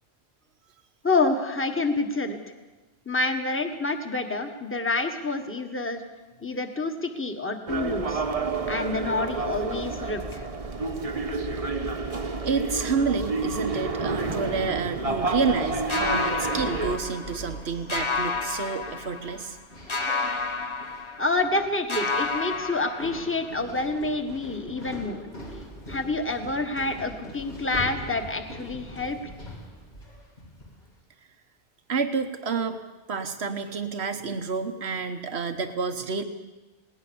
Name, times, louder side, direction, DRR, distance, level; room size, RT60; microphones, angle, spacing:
voice 1, 1.0-2.4 3.0-6.0 6.4-8.2 8.7-10.4 21.2-25.2 25.9-29.2, left 3 dB, 10° left, 6 dB, 1.5 m, -28 dB
sound 1, 7.7-17.0, right 3 dB, 35° right, 1.1 m, -29 dB
voice 2, 12.4-19.6 31.9-32.8 33.1-36.2, right 5 dB, 90° right, 7 dB, 1.4 m, -29 dB
sound 2, 14.4-30.9, equal, 75° left, 3.5 m, -42 dB
sound 3, 15.9-17.6 17.9-19.5 19.9-21.6 21.9-23.6, left 4 dB, 30° left, 0.8 m, -30 dB
20.5 x 18.5 x 7.1 m, 1.2 s
omnidirectional pair, 1.1 m